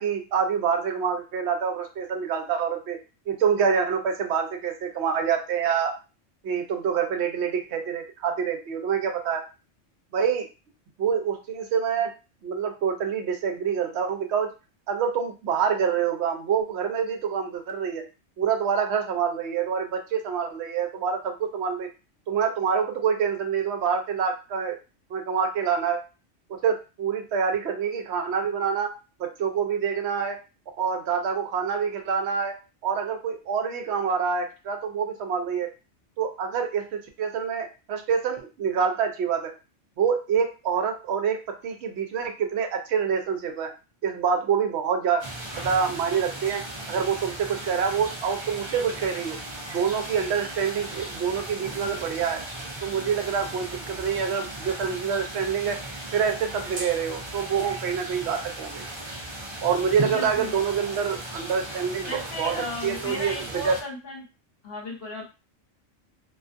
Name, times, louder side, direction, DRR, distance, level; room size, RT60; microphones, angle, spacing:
voice 1, 0.0-3.0 3.3-6.0 6.4-9.4 10.1-10.5 11.0-12.1 12.4-14.5 14.9-18.1 18.4-21.9 22.3-24.8 25.1-26.0 26.5-28.9 29.2-30.4 30.8-32.5 32.8-35.7 36.2-39.5 40.0-43.7 44.0-45.2 45.6-49.4 49.7-52.4 52.8-55.8 56.1-58.9 59.6-63.8, right 6 dB, 65° right, 5 dB, 0.8 m, -26 dB
sound 1, 45.2-63.8, right 1 dB, 40° right, 0.4 m, -37 dB
voice 2, 60.1-60.5 62.0-64.2 64.6-65.2, left 1 dB, 55° left, 0 dB, 1.2 m, -35 dB
2.4 x 2.3 x 2.5 m, 0.31 s
omnidirectional pair, 1.3 m